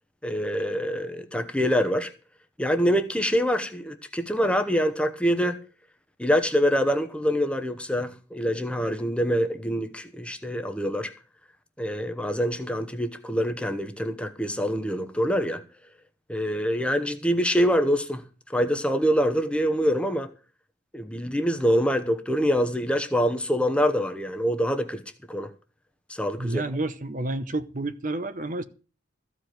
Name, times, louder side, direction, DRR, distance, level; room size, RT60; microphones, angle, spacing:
voice 1, 0.2-2.1 2.6-5.6 6.2-11.1 11.8-15.6 16.3-18.2 18.5-20.3 20.9-25.0 25.3-25.5 26.1-26.6, equal, 5° left, 0.9 m, -25 dB
voice 2, 26.4-28.6, right 2 dB, 40° right, 0.9 m, -30 dB
14.5 x 4.9 x 9.2 m
head